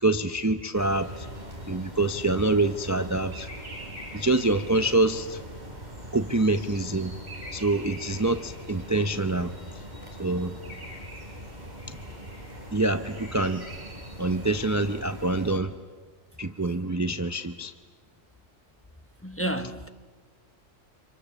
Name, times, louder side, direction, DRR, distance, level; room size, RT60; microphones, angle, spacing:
voice 1, 0.0-1.3 1.7-3.5 4.1-5.4 6.1-7.2 7.5-9.5 10.2-10.6 11.9-12.0 12.7-13.6 14.2-15.7 16.4-17.7, right 2 dB, 20° right, 0.6 m, -26 dB
sound 1, 0.7-15.6, equal, 35° right, 4.3 m, -41 dB
voice 2, 19.2-19.9, right 1 dB, 10° left, 0.9 m, -30 dB
30.0 x 26.0 x 7.0 m
omnidirectional pair, 1.3 m